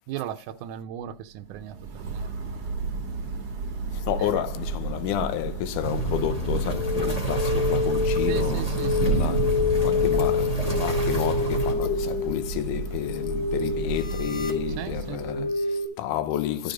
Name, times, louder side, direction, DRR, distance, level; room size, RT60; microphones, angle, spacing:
voice 1, 0.1-3.0 4.2-4.4 8.3-9.4 14.8-15.5, right 12 dB, 80° right, 2.1 m, -37 dB
Thunder / Rain, 1.4-15.7, right 4 dB, 45° right, 1.7 m, -32 dB
voice 2, 3.9-8.7 8.9-9.5 9.8-16.7, left 11 dB, 80° left, 2.4 m, -30 dB
sound 1, 5.8-11.7, right 3 dB, 15° left, 1.8 m, -29 dB
sound 2, 6.7-15.9, left 5 dB, 45° left, 2.3 m, -28 dB
13.0 x 5.3 x 5.0 m
omnidirectional pair, 3.7 m